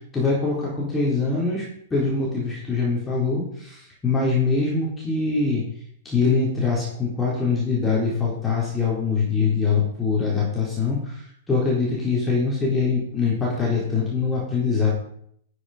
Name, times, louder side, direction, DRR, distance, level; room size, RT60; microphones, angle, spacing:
voice 1, 0.1-1.6 1.9-5.6 6.0-11.1 11.5-14.9, left 4 dB, 10° left, -5 dB, 3.9 m, -23 dB
12.5 x 6.8 x 5.0 m, 0.67 s
figure-of-eight pair, 105°, 0 cm